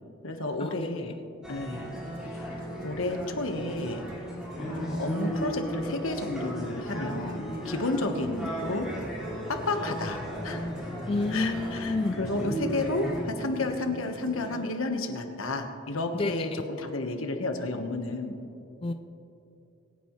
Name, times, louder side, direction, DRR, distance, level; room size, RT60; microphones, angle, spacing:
voice 1, 0.2-1.2 1.5-2.0 2.2-2.4 2.8-4.0 4.6-8.9 9.5-10.7 11.3-18.3, left 2 dB, 85° left, 5 dB, 1.3 m, -31 dB
sound 1, 1.4-13.2, right 1 dB, 5° right, 2.6 m, -36 dB
sound 2, 1.7-14.8, equal, 40° right, 1.5 m, -44 dB
voice 2, 11.1-12.2 16.1-16.6 18.8-18.9, left 2 dB, 25° left, 8 dB, 0.3 m, -29 dB
24.5 x 9.5 x 3.2 m, 2.8 s
head